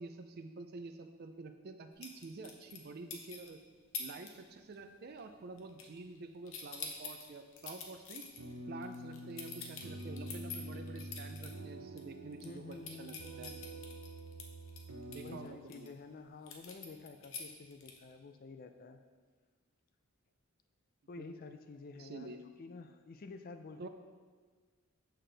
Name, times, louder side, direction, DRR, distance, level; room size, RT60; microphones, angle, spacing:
voice 1, 0.0-3.6 4.0-8.2 8.7-13.5 15.1-15.9 21.2-21.3 22.0-22.4 23.8-23.9, right 3 dB, 45° right, 8 dB, 0.4 m, -48 dB
sound 1, 2.0-3.5 3.9-4.3 4.6-4.9 5.2-6.2 6.5-11.5 11.9-12.0 12.3-15.9 16.5-18.1, left 5 dB, 60° left, 0.8 m, -46 dB
sound 2, 8.4-15.5, right 1 dB, 80° right, 0.7 m, -47 dB
voice 2, 12.4-13.9 15.2-19.0 21.1-23.9, left 3 dB, 40° left, 8 dB, 0.4 m, -50 dB
6.7 x 5.8 x 3.3 m, 1.5 s
head